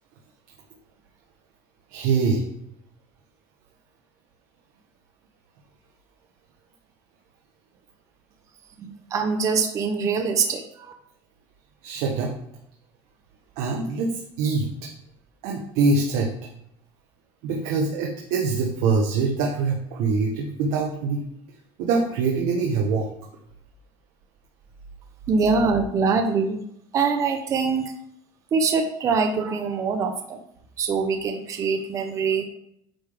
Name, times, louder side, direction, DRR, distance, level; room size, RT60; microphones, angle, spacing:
voice 1, 1.9-2.4 11.8-12.3 13.6-14.7 15.4-16.3 17.4-21.2 21.8-23.1, right 4 dB, 85° right, 0 dB, 1.1 m, -24 dB
voice 2, 8.8-10.9 25.3-26.6 26.9-27.8 28.5-30.4 30.8-32.4, right 5 dB, 30° right, 5 dB, 0.7 m, -23 dB
9.1 x 5.3 x 3.5 m, 0.72 s
cardioid pair, 165°, 11 cm